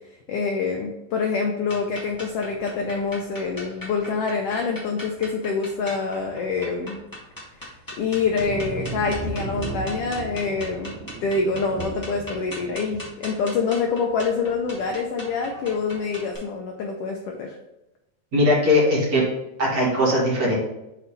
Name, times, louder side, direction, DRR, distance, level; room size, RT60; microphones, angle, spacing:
voice 1, 0.3-7.0 8.0-10.9 11.2-17.6, left 4 dB, 80° left, 2 dB, 1.3 m, -26 dB
sound 1, 1.7-16.4, left 1 dB, 15° left, 0.7 m, -40 dB
sound 2, 8.0-13.5 14.7-15.0, right 4 dB, 80° right, 2.3 m, -35 dB
voice 2, 18.3-19.2 19.6-20.6, left 1 dB, 35° right, -5 dB, 1.8 m, -19 dB
6.5 x 4.0 x 4.0 m, 0.92 s
omnidirectional pair, 3.5 m